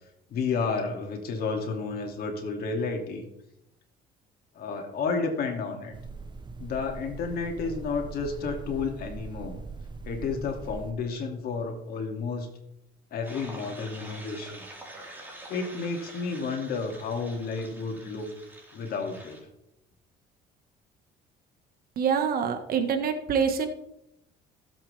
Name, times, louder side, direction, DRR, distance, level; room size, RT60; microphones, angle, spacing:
voice 1, 0.3-3.2 4.5-6.0 6.6-9.6 10.1-12.5 13.1-14.7 15.5-18.3 18.7-19.4, left 4 dB, 65° left, 3 dB, 2.5 m, -31 dB
sound 1, 5.9-10.9, right 4 dB, 25° right, 0.9 m, -41 dB
sound 2, 13.2-19.4, right 1 dB, 10° right, 4.2 m, -46 dB
voice 2, 22.0-23.7, right 6 dB, 60° right, 6 dB, 1.6 m, -25 dB
17.0 x 7.9 x 3.4 m, 0.83 s
cardioid pair, 110°, 17 cm